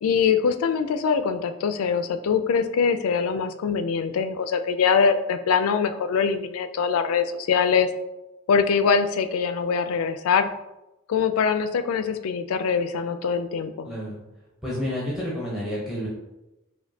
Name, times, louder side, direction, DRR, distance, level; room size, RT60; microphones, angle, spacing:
voice 1, 0.0-7.9 8.5-10.5 11.1-13.9, left 6 dB, 75° left, 9 dB, 0.3 m, -23 dB
voice 2, 13.8-14.2 14.6-16.1, left 1 dB, ahead, -7 dB, 0.7 m, -29 dB
5.1 x 2.6 x 2.7 m, 0.97 s
head